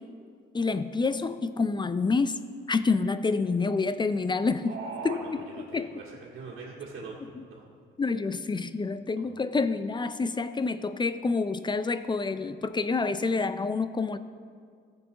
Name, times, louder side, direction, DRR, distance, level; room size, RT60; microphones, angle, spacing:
voice 1, 0.5-2.4 2.7-4.8 5.0-5.9 7.2-7.4 8.0-14.2, left 4 dB, 25° left, 12 dB, 0.4 m, -28 dB
voice 2, 4.6-7.6 9.1-9.2, right 4 dB, 70° right, -6 dB, 2.0 m, -41 dB
15.0 x 7.1 x 4.0 m, 2.1 s
cardioid pair, 90°, 20 cm